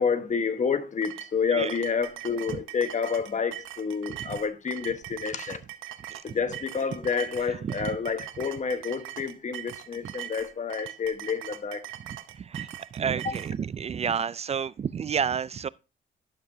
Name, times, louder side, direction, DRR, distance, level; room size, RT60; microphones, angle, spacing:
voice 1, 0.0-5.6 6.2-11.8 13.2-13.3, left 5 dB, 40° left, 1.3 m, -29 dB
sound 1, 1.0-13.5, right 12 dB, 90° right, 0.9 m, -41 dB
voice 2, 7.5-7.9 12.1-15.7, right 7 dB, 35° right, 0.3 m, -31 dB
12.0 x 6.8 x 2.7 m
cardioid pair, 90°, 20 cm